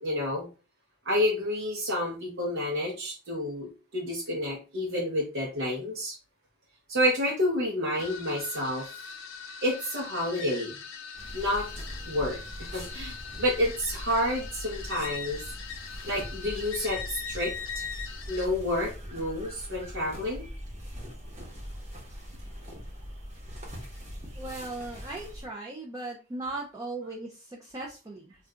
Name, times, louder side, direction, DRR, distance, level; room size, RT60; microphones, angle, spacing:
voice 1, 0.0-0.5 1.0-6.2 6.9-8.9 9.6-10.7 11.3-11.7 12.1-12.4 12.7-15.4 16.1-17.8 18.3-20.4, left 1 dB, 70° right, -1 dB, 0.7 m, -29 dB
sound 1, 7.9-18.5, left 6 dB, 85° left, 0.6 m, -41 dB
sound 2, 11.1-25.5, equal, 35° right, 1.0 m, -42 dB
voice 2, 24.3-28.3, right 2 dB, 20° right, -2 dB, 0.4 m, -38 dB
2.4 x 2.2 x 3.7 m, 0.33 s
head